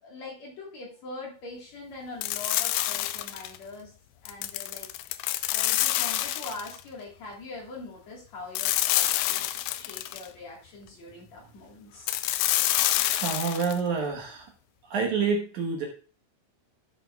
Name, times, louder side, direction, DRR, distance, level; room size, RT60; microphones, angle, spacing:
voice 1, 0.0-3.9 4.2-4.9 5.5-12.1, left 3 dB, 55° left, -2 dB, 2.5 m, -42 dB
sound 1, 2.2-3.6 4.3-6.8 8.5-10.3 12.1-13.8, left 14 dB, 85° left, 2.5 m, -27 dB
voice 2, 12.8-14.5 14.9-15.9, right 5 dB, 65° right, 0 dB, 2.3 m, -28 dB
14.5 x 7.2 x 2.3 m, 0.40 s
omnidirectional pair, 4.4 m